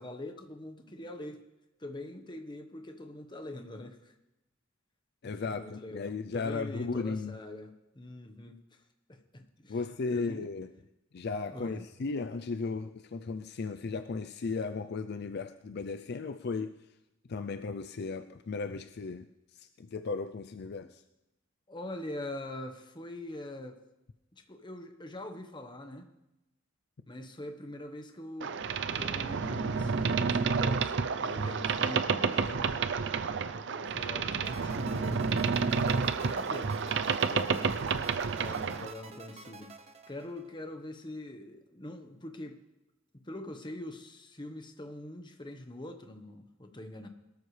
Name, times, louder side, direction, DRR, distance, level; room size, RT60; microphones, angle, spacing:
voice 1, 0.0-1.4 1.8-4.1 5.2-8.8 9.1-9.8 10.1-10.5 11.5-11.8 21.7-23.8 24.4-26.1 27.1-28.6 28.9-32.7 33.5-36.8 37.3-37.8 38.4-39.7 40.1-42.6 43.2-47.1, left 1 dB, 25° left, 6 dB, 1.2 m, -43 dB
voice 2, 5.2-7.3 9.7-10.7 11.1-16.8 17.3-21.0 37.3-37.7, left 4 dB, 55° left, 9 dB, 0.5 m, -36 dB
Boat Water vehicle, 28.4-38.9, right 5 dB, 60° right, 0.5 m, -30 dB
sound 1, 34.4-40.7, right 4 dB, 30° right, 0.8 m, -50 dB
22.0 x 13.0 x 3.3 m, 0.95 s
head